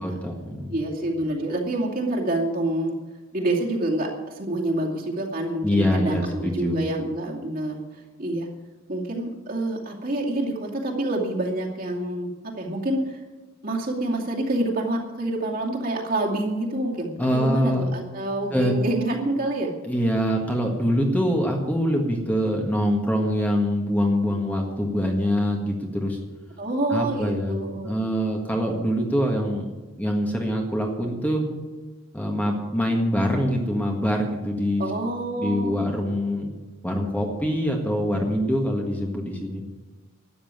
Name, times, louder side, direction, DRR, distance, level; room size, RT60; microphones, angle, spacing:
voice 1, 0.0-0.7 5.6-6.8 17.2-17.8 18.5-18.8 19.8-26.2 26.9-27.6 27.8-29.7 30.0-31.4 32.1-34.9 35.4-36.5 36.8-39.6, equal, 5° left, 1 dB, 1.6 m, -24 dB
voice 2, 0.7-3.0 3.3-4.1 4.4-7.8 8.2-8.5 8.9-13.2 13.6-19.7 26.6-27.9 34.8-35.8, right 1 dB, 45° right, -2 dB, 2.4 m, -27 dB
13.0 x 8.8 x 9.1 m, 1.2 s
head